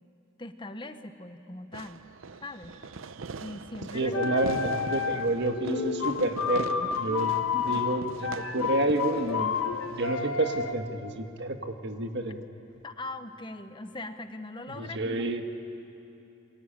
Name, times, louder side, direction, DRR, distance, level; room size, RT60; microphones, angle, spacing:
voice 1, 0.4-2.0 2.4-2.8 3.4-4.4 7.5-7.8 12.8-15.3, left 2 dB, 25° left, 9 dB, 0.9 m, -41 dB
Fireworks, 1.7-10.7, right 4 dB, 70° right, 0.6 m, -43 dB
voice 2, 3.9-9.6 9.9-12.4 14.7-15.4, right 1 dB, 55° right, 6 dB, 1.6 m, -29 dB
sound 1, 4.0-5.4 5.6-10.7, left 6 dB, 80° left, 1.5 m, -31 dB
28.0 x 23.0 x 8.8 m, 2.9 s
head